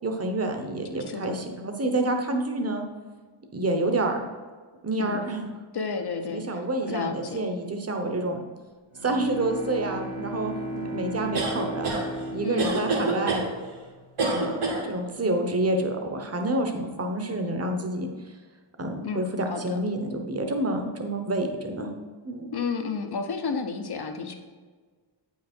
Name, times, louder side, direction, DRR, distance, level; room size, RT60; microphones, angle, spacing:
voice 1, 0.0-2.9 3.5-4.2 4.8-5.5 6.3-8.4 9.0-11.9 12.3-13.4 14.2-18.1 18.8-21.9 22.2-22.5, right 2 dB, 30° right, 4 dB, 0.9 m, -28 dB
voice 2, 5.7-7.4 12.4-12.7 19.0-19.8 22.5-24.3, left 5 dB, 50° left, 6 dB, 0.9 m, -31 dB
Bowed string instrument, 8.9-14.0, equal, 65° right, 1.1 m, -36 dB
sound 1, 11.3-12.0 12.6-13.4 14.2-14.8, right 3 dB, 85° right, 2.1 m, -26 dB
8.5 x 5.7 x 4.4 m, 1.5 s
wide cardioid pair, 165°, 49 cm